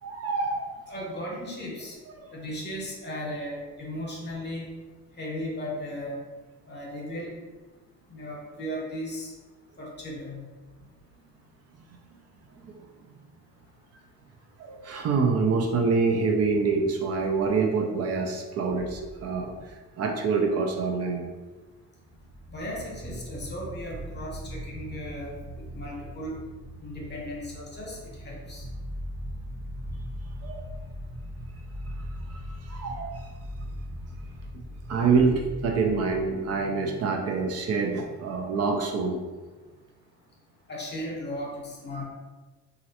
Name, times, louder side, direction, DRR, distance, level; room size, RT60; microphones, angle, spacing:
voice 1, 0.0-0.7 2.2-2.3 12.5-12.8 14.6-21.3 30.4-30.6 32.3-33.1 34.9-39.2, right 4 dB, 55° right, 2 dB, 0.5 m, -26 dB
voice 2, 0.9-2.0 2.3-4.6 5.2-6.2 6.7-7.3 8.1-9.3 9.8-10.5 22.5-25.3 25.7-26.4 26.8-28.0 28.2-28.6 40.7-42.0, equal, 35° left, -2 dB, 0.9 m, -36 dB
sound 1, 18.7-20.1 21.5-21.6 21.9-36.3, equal, 40° right, 0.9 m, -40 dB
3.0 x 2.5 x 2.8 m, 1.3 s
cardioid pair, 90°, 30 cm